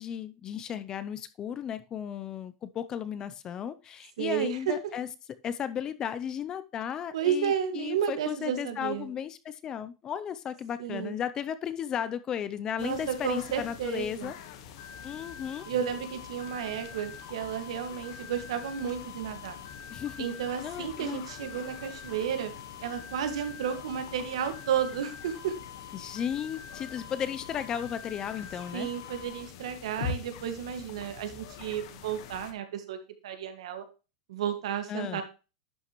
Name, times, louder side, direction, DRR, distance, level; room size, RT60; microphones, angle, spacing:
voice 1, 0.0-5.1 5.4-14.3 15.0-15.7 19.9-20.3 20.6-21.5 25.9-28.9 34.9-35.2, left 8 dB, 20° left, 0.5 m, -35 dB
voice 2, 4.2-4.7 7.1-9.1 10.8-11.1 12.8-14.3 15.7-19.6 20.2-22.5 22.8-25.5 28.7-33.0 33.2-33.8 34.3-35.2, right 8 dB, 80° right, 1.8 m, -32 dB
sound 1, 12.8-32.5, left 7 dB, 55° left, 1.3 m, -45 dB
sound 2, 14.8-29.4, left 7 dB, 70° left, 4.9 m, -47 dB
11.0 x 5.6 x 3.1 m
supercardioid pair, 160°, 3 cm